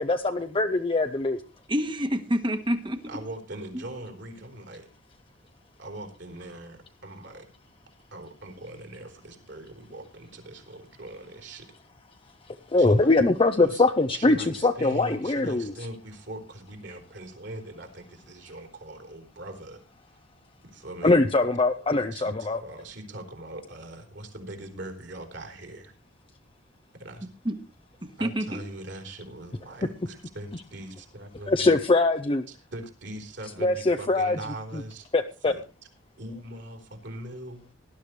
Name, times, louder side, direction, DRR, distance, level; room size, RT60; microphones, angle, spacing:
voice 1, 0.0-1.4 12.7-14.4 14.6-15.7 21.0-22.6 31.5-32.4 33.6-34.4 35.1-35.5, left 2 dB, 30° left, 7 dB, 0.6 m, -22 dB
voice 2, 1.7-3.0 3.7-3.8 27.4-27.5 28.0-28.6, equal, 25° right, 9 dB, 1.4 m, -27 dB
voice 3, 3.1-4.9 5.8-7.5 8.1-11.7 12.8-13.2 13.6-13.8 14.1-19.8 20.1-20.2 20.6-21.2 22.1-25.9 26.9-27.3 28.2-31.8 32.5-35.1 35.4-35.6 36.2-37.7, right 1 dB, 65° right, 4 dB, 3.7 m, -41 dB
19.0 x 11.5 x 3.2 m, 0.32 s
head